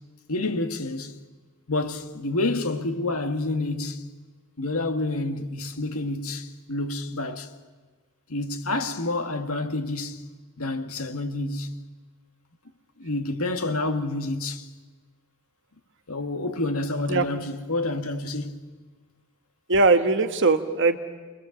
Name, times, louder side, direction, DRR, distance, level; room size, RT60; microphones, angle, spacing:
voice 1, 0.3-1.2 1.7-4.1 4.6-7.5 8.3-10.3 10.6-11.8 13.0-14.7 16.1-18.6, left 2 dB, 80° left, 2.0 m, -28 dB
voice 2, 19.7-21.0, right 3 dB, 55° right, 1.5 m, -20 dB
30.0 x 22.5 x 7.4 m
head